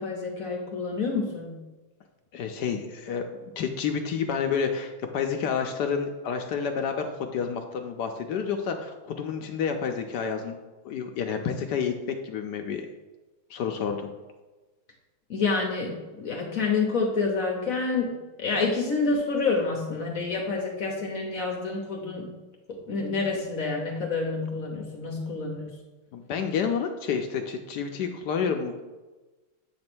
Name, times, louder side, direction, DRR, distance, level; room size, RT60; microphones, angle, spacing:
voice 1, 0.0-1.5 15.3-18.1 18.4-22.3 22.9-25.7, left 4 dB, 50° left, 0 dB, 1.2 m, -28 dB
voice 2, 2.3-10.5 10.8-12.9 13.5-14.1 26.1-28.8, left 6 dB, 70° left, 5 dB, 1.0 m, -29 dB
8.7 x 3.2 x 6.1 m, 1.2 s
omnidirectional pair, 2.3 m